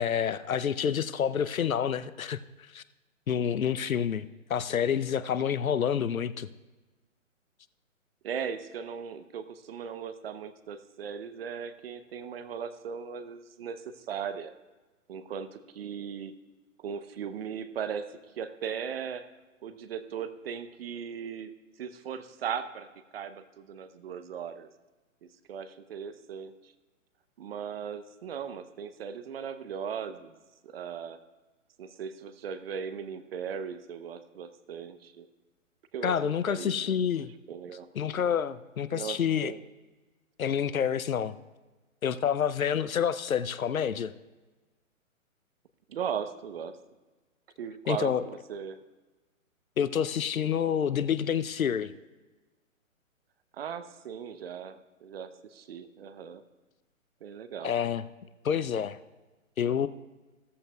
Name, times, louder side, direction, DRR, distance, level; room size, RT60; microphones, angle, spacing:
voice 1, 0.0-2.4 2.7-2.8 3.3-6.5 36.0-37.3 38.0-39.5 40.4-41.4 42.0-44.1 47.9-48.2 49.8-51.9 57.6-58.0 58.4-59.0 59.6-59.9, left 8 dB, 85° left, 15 dB, 0.7 m, -28 dB
voice 2, 8.2-14.5 15.1-16.3 16.8-19.3 19.6-21.5 21.8-22.9 23.1-24.7 25.2-26.7 27.4-30.3 30.6-31.2 31.8-35.3 35.9-36.9 37.5-37.9 38.9-39.7 45.9-46.8 47.6-48.8 53.5-56.4 57.2-57.7, right 7 dB, 45° right, 11 dB, 0.9 m, -38 dB
15.5 x 14.0 x 2.3 m, 1.2 s
hypercardioid pair, 135°, 41 cm